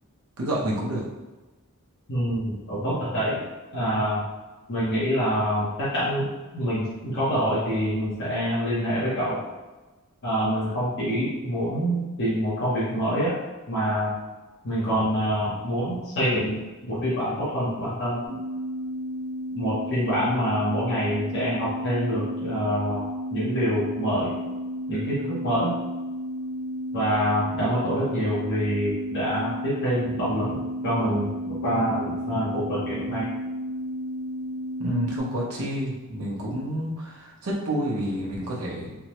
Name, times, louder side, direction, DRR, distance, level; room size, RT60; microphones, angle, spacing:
voice 1, 0.4-1.0 34.8-38.9, right 1 dB, 80° right, -4 dB, 0.9 m, -29 dB
voice 2, 2.1-3.4 3.7-4.2 4.7-6.3 6.5-9.4 10.2-13.4 13.7-14.1 14.6-18.2 19.5-24.3 24.9-25.7 26.9-31.3 31.6-33.2, equal, 55° left, -10 dB, 0.9 m, -26 dB
sound 1, 18.2-35.2, equal, 40° right, 0.9 m, -32 dB
3.4 x 2.1 x 2.9 m, 1.2 s
head